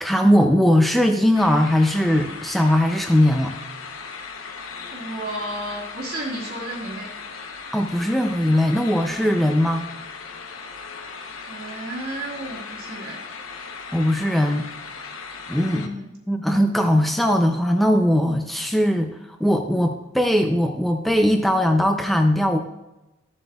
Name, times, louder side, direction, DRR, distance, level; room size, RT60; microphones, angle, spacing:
voice 1, 0.0-3.6 7.7-9.9 13.9-14.7 15.5-19.1 19.4-22.6, equal, ahead, 4 dB, 0.4 m, -20 dB
sound 1, 1.3-15.9, left 5 dB, 85° left, 0.9 m, -37 dB
voice 2, 4.9-7.1 11.5-13.2 15.7-16.0, right 1 dB, 50° right, -8 dB, 1.5 m, -32 dB
13.0 x 7.6 x 2.3 m, 0.99 s
head